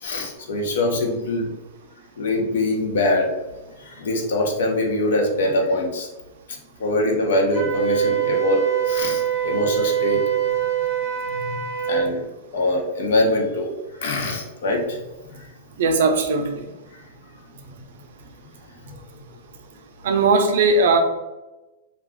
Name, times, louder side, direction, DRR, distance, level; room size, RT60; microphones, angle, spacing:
voice 1, 0.0-1.5 2.2-3.3 3.8-6.1 6.8-8.6 8.9-10.2 11.3-11.6 11.9-12.3 12.5-13.7 14.0-15.0, left 2 dB, 65° left, 1 dB, 0.7 m, -23 dB
Wind instrument woodwind instrument, 7.5-12.1, right 9 dB, 15° right, 0.9 m, -23 dB
voice 2, 15.8-16.7 20.0-21.0, right 3 dB, 60° right, 5 dB, 0.4 m, -18 dB
2.3 x 2.3 x 3.5 m, 1.1 s
supercardioid pair, 175°, 0 cm